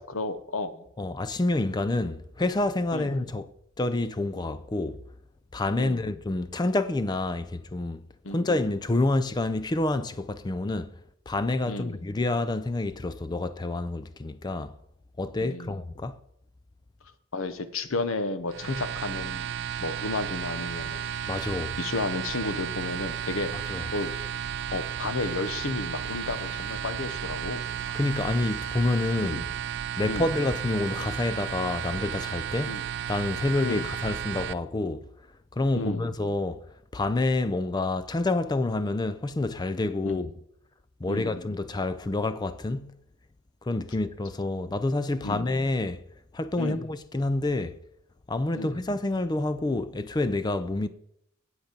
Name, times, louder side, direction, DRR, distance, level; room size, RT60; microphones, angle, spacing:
voice 1, 0.0-0.8 2.9-3.2 5.8-6.1 8.2-8.5 11.7-12.0 15.4-15.8 17.3-21.0 21.8-23.5 23.9-24.1 24.7-28.0 29.2-29.4 30.1-30.3 32.7-32.8 33.6-33.9 35.7-36.1 40.0-40.2 41.1-41.4 45.2-45.5 46.6-46.9 48.5-48.8, left 3 dB, 65° left, 0.8 m, -33 dB
voice 2, 1.0-3.4 3.8-5.0 5.5-8.0 8.3-10.9 11.3-14.7 15.2-16.2 21.3-21.8 23.5-23.9 27.9-29.4 30.0-32.8 33.1-35.1 35.5-36.6 36.9-40.3 41.0-43.0 43.6-46.0 46.3-47.8 48.3-50.9, left 2 dB, 20° left, 0.4 m, -28 dB
sound 1, 18.5-34.5, right 8 dB, 55° right, 0.4 m, -33 dB
8.0 x 7.9 x 5.2 m
head